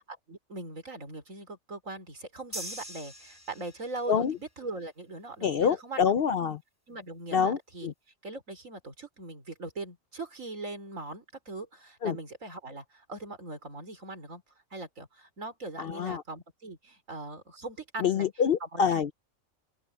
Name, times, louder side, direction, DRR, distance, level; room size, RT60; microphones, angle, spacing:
voice 1, 0.0-6.1 6.9-7.9 8.2-14.4 14.7-18.3 18.6-19.1, right 2 dB, 75° right, 4.8 m, -40 dB
sound 1, 2.5-4.1, equal, 10° left, 5.2 m, -42 dB
voice 2, 5.4-6.6 7.3-7.9 12.0-12.2 15.8-16.2 18.0-19.1, left 7 dB, 60° left, 0.7 m, -26 dB
open air
omnidirectional pair, 1.4 m